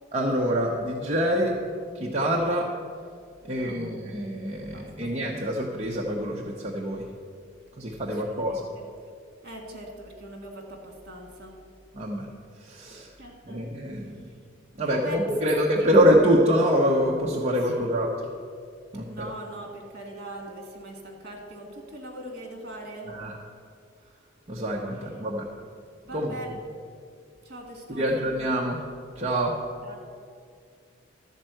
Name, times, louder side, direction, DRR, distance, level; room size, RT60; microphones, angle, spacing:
voice 1, 0.1-1.5 1.9-2.7 3.5-7.1 7.8-8.6 11.9-12.3 12.6-13.1 13.5-14.2 14.8-18.1 18.9-19.3 23.1-23.4 24.5-25.5 26.1-26.4 27.9-28.8 29.2-29.6, equal, 35° right, -2 dB, 0.8 m, -25 dB
voice 2, 3.5-4.0 4.7-5.1 8.0-8.9 9.4-11.6 13.2-13.6 14.8-15.9 17.6-18.0 19.0-23.2 26.1-26.6 27.4-28.3 29.8-30.0, right 1 dB, 50° right, 1 dB, 2.0 m, -41 dB
12.5 x 4.4 x 7.6 m, 2.3 s
head